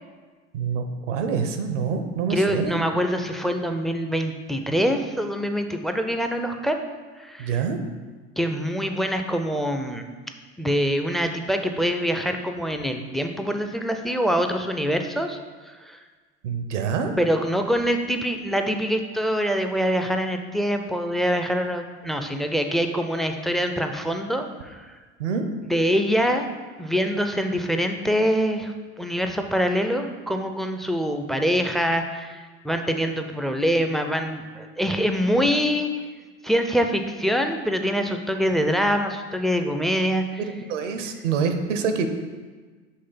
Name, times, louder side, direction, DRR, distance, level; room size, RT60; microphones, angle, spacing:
voice 1, 0.5-2.8 7.4-7.8 16.4-17.1 25.2-25.5 40.4-42.1, right 6 dB, 85° right, 7 dB, 0.7 m, -26 dB
voice 2, 2.3-6.8 7.2-7.6 8.4-10.0 10.6-15.4 15.8-16.0 17.2-24.8 25.7-26.5 26.8-35.9 36.4-40.2, equal, ahead, 5 dB, 0.3 m, -24 dB
5.6 x 3.2 x 5.6 m, 1.4 s
hypercardioid pair, 80°, 36 cm